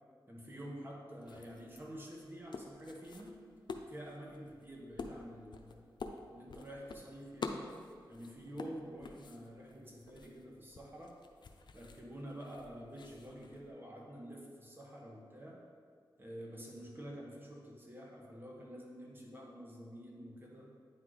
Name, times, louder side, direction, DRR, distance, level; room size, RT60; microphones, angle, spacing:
voice 1, 0.3-3.4 3.9-5.9 6.3-7.7 8.1-11.1 11.7-15.6 16.2-20.7, equal, 25° right, -2 dB, 1.5 m, -48 dB
sound 1, 1.2-13.7, left 4 dB, 60° left, 0.5 m, -49 dB
9.4 x 3.1 x 4.0 m, 2.1 s
cardioid pair, 55°, 9 cm